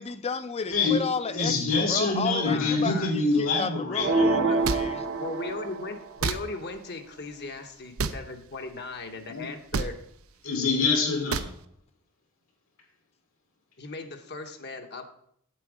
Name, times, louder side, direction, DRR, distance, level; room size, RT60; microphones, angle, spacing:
voice 1, 0.0-5.0, left 5 dB, 30° left, 0.5 m, -33 dB
voice 2, 0.7-4.3 9.3-9.5 10.4-11.5, left 3 dB, 80° left, 2.8 m, -26 dB
voice 3, 2.5-3.2 4.0-4.6 5.2-10.0 13.8-15.1, left 3 dB, 55° left, 1.1 m, -37 dB
sound 1, 4.0-6.0, right 3 dB, 65° right, 0.9 m, -26 dB
sound 2, 4.6-4.8 6.2-6.4 8.0-8.2 9.7-9.9 11.3-11.5, right 4 dB, 90° right, 0.6 m, -27 dB
8.1 x 7.5 x 5.0 m
head